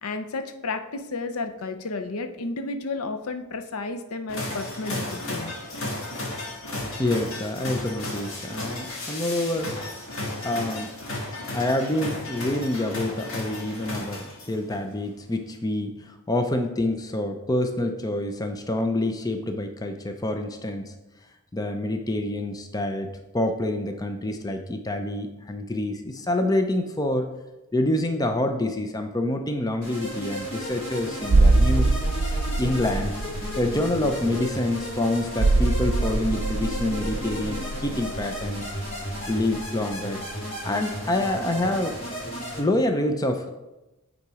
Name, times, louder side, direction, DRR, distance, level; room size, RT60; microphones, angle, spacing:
voice 1, 0.0-5.5, left 3 dB, 80° left, 8 dB, 0.6 m, -32 dB
sound 1, 4.3-14.7, left 2 dB, 65° left, 1.7 m, -34 dB
voice 2, 7.0-10.0 10.4-10.9 11.5-20.9 21.5-23.1 23.3-27.3 27.7-31.9 32.6-33.1 33.6-38.7 39.3-40.2 40.6-42.0 42.6-43.5, left 1 dB, 15° left, 5 dB, 0.5 m, -27 dB
sound 2, 29.8-42.6, equal, 40° left, 2.8 m, -34 dB
sound 3, 31.3-39.7 39.9-40.1, right 2 dB, 80° right, 0.5 m, -24 dB
8.5 x 4.0 x 4.8 m, 1.0 s
head